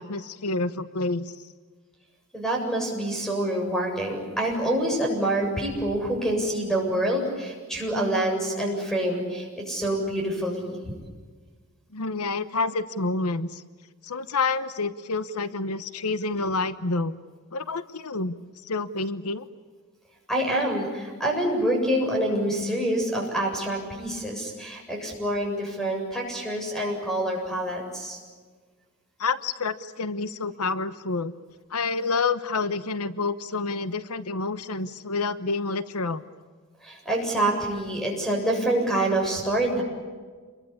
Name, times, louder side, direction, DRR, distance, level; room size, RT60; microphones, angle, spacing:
voice 1, 0.0-1.5 11.9-13.6 14.0-17.2 17.5-19.5 29.2-31.3 31.7-36.2, left 3 dB, 85° left, 13 dB, 1.0 m, -28 dB
voice 2, 2.3-10.8 20.3-28.2 36.8-39.8, right 1 dB, ahead, 1 dB, 7.6 m, -26 dB
28.5 x 23.0 x 8.6 m, 1.5 s
head